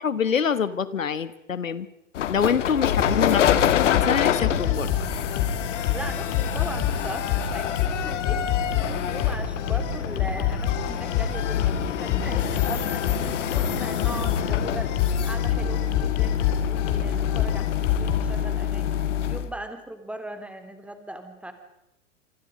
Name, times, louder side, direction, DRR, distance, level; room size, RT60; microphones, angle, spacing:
voice 1, 0.0-1.9 2.3-3.4 3.8-4.9, left 7 dB, 90° left, 16 dB, 1.3 m, -25 dB
sound 1, 2.1-19.5, left 10 dB, 70° left, 1.6 m, -26 dB
sound 2, 3.0-18.3, left 9 dB, 40° left, 3.4 m, -28 dB
voice 2, 5.9-8.5 8.8-19.0 19.3-21.5, right 1 dB, 5° right, 7 dB, 3.2 m, -39 dB
26.5 x 26.0 x 5.2 m, 0.86 s
hypercardioid pair, 110°, 38 cm